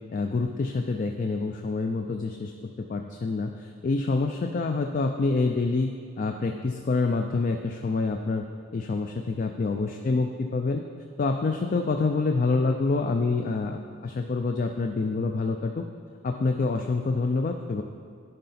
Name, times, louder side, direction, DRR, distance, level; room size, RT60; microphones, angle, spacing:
voice 1, 0.1-2.5 2.8-8.5 8.7-10.8 11.2-15.8 16.2-17.8, left 3 dB, 40° left, 5 dB, 0.3 m, -27 dB
10.5 x 5.6 x 4.2 m, 2.2 s
head